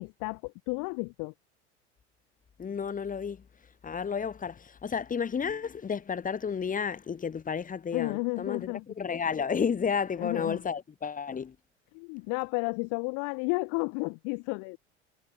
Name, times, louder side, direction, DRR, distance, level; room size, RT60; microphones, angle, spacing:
voice 1, 0.0-1.3 7.9-8.8 10.2-10.6 11.9-14.8, left 35 dB, 55° left, 3.1 m, -32 dB
voice 2, 2.6-3.4 3.8-11.6, left 6 dB, 20° left, 2.1 m, -32 dB
figure-of-eight pair, 75°, 35 cm